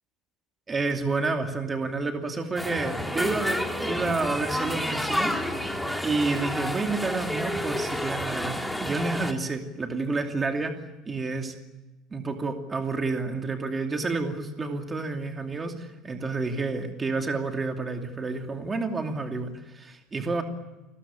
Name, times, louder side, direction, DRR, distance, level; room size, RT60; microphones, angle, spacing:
voice 1, 0.7-5.3 6.0-11.5 12.1-20.4, right 3 dB, 15° right, 4 dB, 2.7 m, -29 dB
sound 1, 2.6-9.3, equal, ahead, 2.4 m, -30 dB
29.5 x 20.5 x 8.8 m, 1.1 s
cardioid pair, 160°, 0 cm